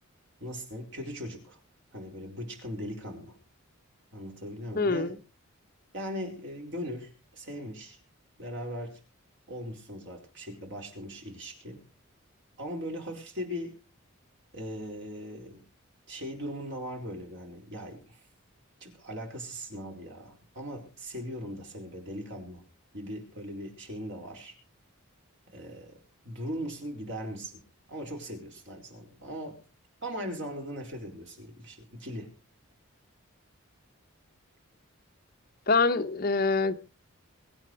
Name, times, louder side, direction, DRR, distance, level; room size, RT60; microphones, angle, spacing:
voice 1, 0.4-1.6 1.9-3.4 4.1-5.1 5.9-8.0 8.4-9.0 9.5-11.8 12.6-13.7 14.5-15.6 16.1-18.2 18.8-22.6 22.9-24.5 25.5-25.9 26.2-27.6 27.9-29.6 30.0-32.3, equal, 55° right, 4.7 m, -39 dB
voice 2, 4.8-5.2 35.7-36.8, left 3 dB, 45° left, 1.1 m, -25 dB
23.5 x 8.9 x 4.9 m
head